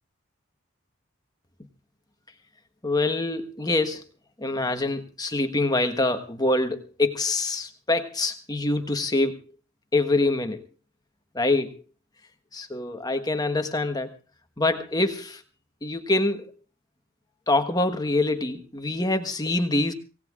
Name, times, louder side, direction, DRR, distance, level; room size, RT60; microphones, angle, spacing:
voice 1, 2.8-4.0 4.4-9.4 9.9-10.6 11.3-11.7 12.5-14.1 14.6-15.4 15.8-16.4 17.5-19.9, left 2 dB, 20° left, 8 dB, 1.3 m, -25 dB
25.5 x 17.5 x 2.5 m, 0.33 s
head